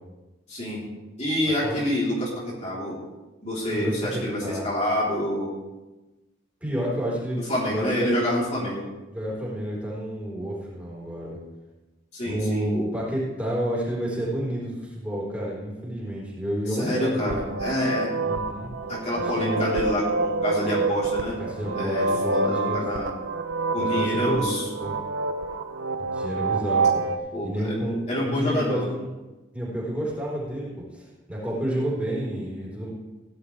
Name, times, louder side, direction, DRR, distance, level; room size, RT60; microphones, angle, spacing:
voice 1, 0.5-0.8 1.2-2.9 3.4-5.5 7.4-8.8 12.1-12.7 16.8-18.1 18.9-21.4 21.7-23.1 23.7-24.7 27.3-27.7 28.1-28.9, left 1 dB, 35° left, -6 dB, 3.7 m, -27 dB
voice 2, 3.7-4.7 6.6-8.1 9.1-11.4 12.2-17.4 18.2-18.7 19.2-19.7 20.5-20.8 21.4-22.8 23.8-25.0 26.0-27.0 27.4-29.1 29.5-32.9, right 1 dB, 10° right, -6 dB, 4.3 m, -30 dB
sound 1, 17.2-27.2, right 3 dB, 80° right, 0.7 m, -27 dB
17.0 x 11.0 x 3.4 m, 1.1 s
head